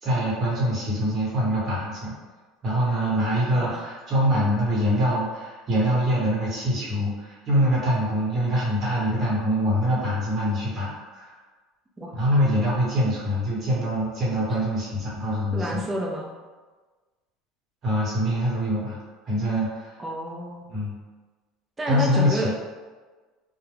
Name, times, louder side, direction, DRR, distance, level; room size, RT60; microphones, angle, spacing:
voice 1, 0.0-2.1 2.6-11.3 12.1-15.8 17.8-19.0 19.2-20.0 20.7-20.9 21.9-22.5, equal, 30° right, -7 dB, 1.2 m, -24 dB
voice 2, 15.5-16.3 20.0-20.7 21.8-22.5, right 1 dB, 15° right, -3 dB, 0.5 m, -29 dB
2.3 x 2.2 x 3.3 m, 1.3 s
supercardioid pair, 130°, 0 cm